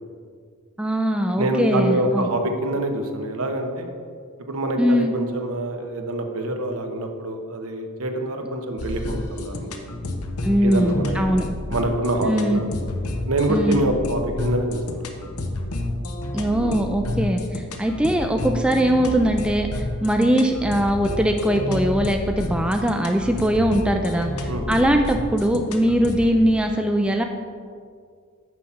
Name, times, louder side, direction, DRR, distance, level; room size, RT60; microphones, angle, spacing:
voice 1, 0.8-2.3 4.8-5.1 10.4-11.5 12.3-12.6 13.5-13.8 16.3-27.2, equal, 5° right, 4 dB, 0.3 m, -21 dB
voice 2, 1.4-3.9 4.5-9.7 10.6-11.1 11.7-12.6 13.2-15.3 16.6-16.8 24.5-24.6, right 1 dB, 70° right, 4 dB, 0.9 m, -25 dB
sound 1, 8.8-26.4, left 1 dB, 80° left, 0.8 m, -30 dB
6.3 x 5.7 x 7.1 m, 2.1 s
head